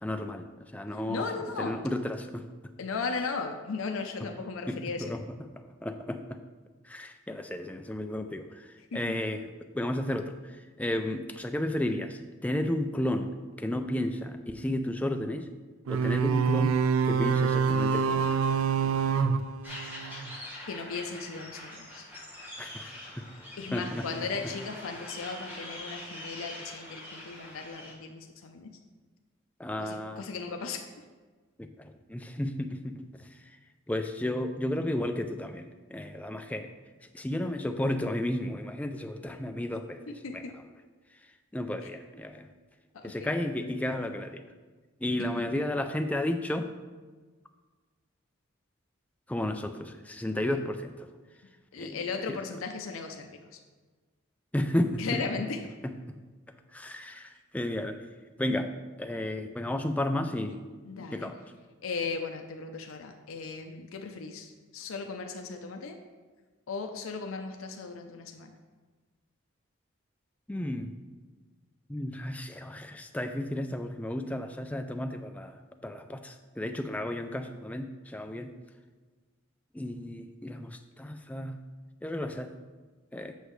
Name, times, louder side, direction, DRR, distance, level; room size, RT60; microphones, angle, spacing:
voice 1, 0.0-1.3 1.6-2.5 4.7-4.8 5.1-5.2 5.6-6.4 6.8-15.5 15.9-16.8 17.0-18.4 22.6-24.0 29.6-30.2 31.6-33.6 33.9-36.7 37.0-40.0 40.3-40.4 41.5-42.5 43.0-44.4 45.0-46.7 49.3-51.1 51.8-52.0 52.3-52.4 54.5-55.2 56.1-56.2 56.7-58.0 58.4-58.7 59.0-60.6 61.1-61.3 70.5-70.9 71.9-78.5 79.7-81.6 82.0-82.5 83.1-83.3, left 1 dB, 5° left, 6 dB, 0.3 m, -33 dB
voice 2, 1.1-1.8 2.8-5.2 8.9-9.0 20.7-22.0 23.3-28.7 29.8-30.8 40.1-40.6 41.8-41.9 42.9-43.3 45.4-45.5 50.3-50.4 51.7-53.6 55.0-55.6 60.8-61.3 61.8-66.0 66.7-68.5, left 4 dB, 85° left, 4 dB, 0.6 m, -37 dB
sound 1, 15.9-20.3, right 6 dB, 85° right, 0.4 m, -26 dB
sound 2, 19.6-27.9, left 1 dB, 10° right, 1.3 m, -44 dB
8.2 x 6.5 x 3.2 m, 1.4 s
head